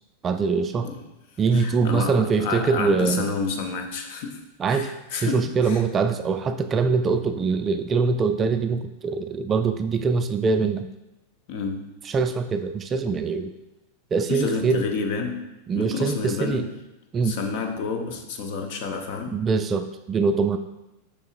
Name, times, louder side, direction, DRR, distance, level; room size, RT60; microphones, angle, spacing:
voice 1, 0.2-0.9 1.4-3.3 4.6-4.9 5.2-10.9 12.1-13.5 14.1-14.9 15.7-16.7 17.1-17.4 19.3-20.6, right 5 dB, 25° right, 9 dB, 0.3 m, -23 dB
voice 2, 1.5-4.4 4.7-5.8 11.5-11.9 14.3-16.7 17.2-19.4, left 4 dB, 45° left, 4 dB, 0.8 m, -30 dB
6.5 x 6.0 x 2.5 m, 0.98 s
figure-of-eight pair, 90°, 0 cm